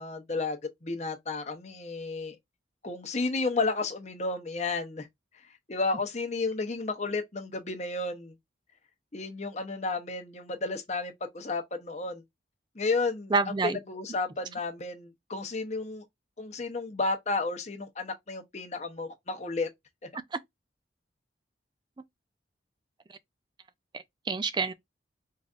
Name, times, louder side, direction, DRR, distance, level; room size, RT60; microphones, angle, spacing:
voice 1, 0.0-2.4 2.8-5.1 5.4-8.3 9.1-12.2 12.7-13.3 13.9-16.0 16.4-19.7 20.0-20.1, left 3 dB, 35° left, 0.8 m, -32 dB
voice 2, 13.3-13.8 20.3-20.4 23.1-23.2 23.9-24.7, right 4 dB, 25° right, 0.3 m, -28 dB
3.7 x 3.2 x 2.4 m
head